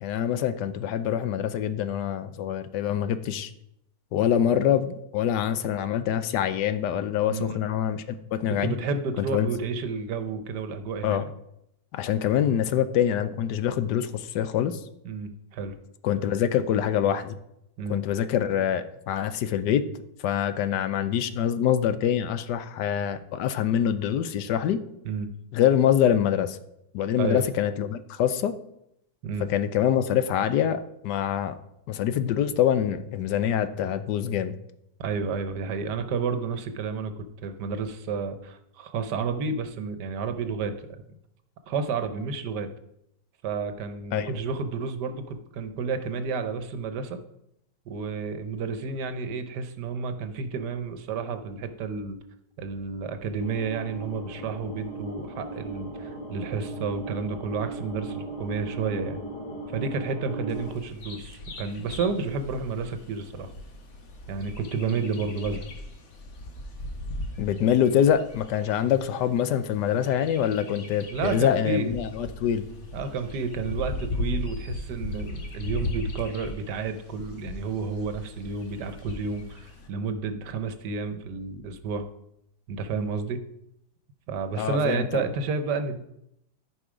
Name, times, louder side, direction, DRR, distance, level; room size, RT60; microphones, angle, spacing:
voice 1, 0.0-3.5 4.1-8.0 8.3-8.7 9.3-9.5 11.0-11.2 11.9-14.8 16.0-17.4 17.9-19.8 20.2-24.8 25.5-26.6 26.9-28.5 29.5-31.5 31.9-34.5 44.1-44.4 67.4-72.7 84.6-85.2, left 9 dB, 80° left, 12 dB, 1.3 m, -25 dB
voice 2, 8.6-11.2 15.0-15.8 17.8-18.0 25.0-25.3 27.2-27.4 29.2-29.5 35.0-40.7 41.7-42.7 43.4-47.2 47.9-52.2 52.6-59.2 59.7-63.5 64.3-65.7 71.1-71.9 72.9-82.1 82.7-83.4 84.3-86.0, right 5 dB, 75° right, 9 dB, 1.4 m, -31 dB
sound 1, 53.4-60.7, right 2 dB, 20° left, 1.3 m, -37 dB
Bird vocalization bird call bird song, 60.5-79.9, left 2 dB, 45° left, 1.4 m, -38 dB
13.5 x 5.0 x 5.0 m, 0.80 s
omnidirectional pair, 1.8 m